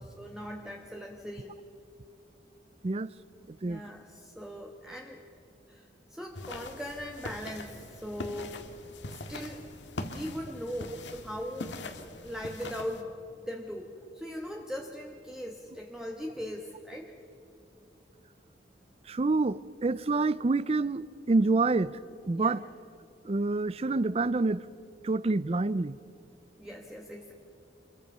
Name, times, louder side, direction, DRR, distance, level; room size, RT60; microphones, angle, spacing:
voice 1, 0.0-1.6 3.6-5.2 5.7-8.6 9.1-9.7 10.0-11.7 12.2-17.1 22.3-22.6 26.6-27.3, equal, 5° right, 1.2 m, -40 dB
voice 2, 3.5-3.8 19.1-22.0 22.2-22.6 23.2-24.6 25.0-26.0, right 3 dB, 35° right, 0.5 m, -27 dB
sound 1, 6.3-13.0, left 2 dB, 85° left, 1.7 m, -42 dB
26.5 x 22.5 x 5.5 m
head